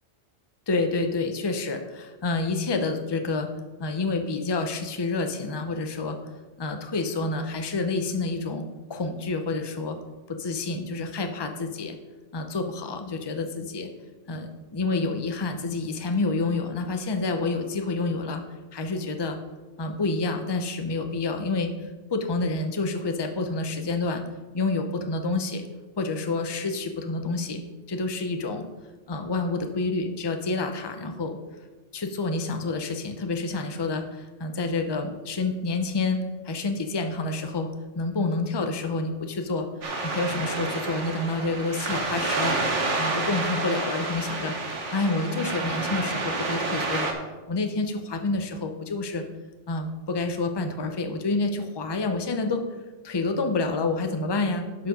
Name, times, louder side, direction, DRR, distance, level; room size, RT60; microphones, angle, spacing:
voice 1, 0.7-3.5 3.8-6.2 6.6-10.0 10.3-12.0 12.3-13.9 14.3-18.4 18.7-19.4 19.8-24.2 24.5-25.6 26.0-27.6 27.9-28.6 29.1-31.4 31.9-36.2 36.4-37.7 37.9-39.7 40.0-42.6 43.0-47.1 47.5-49.2 49.7-52.6 53.0-54.9, left 3 dB, 25° left, 5 dB, 0.7 m, -28 dB
sound 1, 39.8-47.1, right 3 dB, 85° right, 1.6 m, -29 dB
11.5 x 4.9 x 5.2 m, 1.2 s
omnidirectional pair, 1.2 m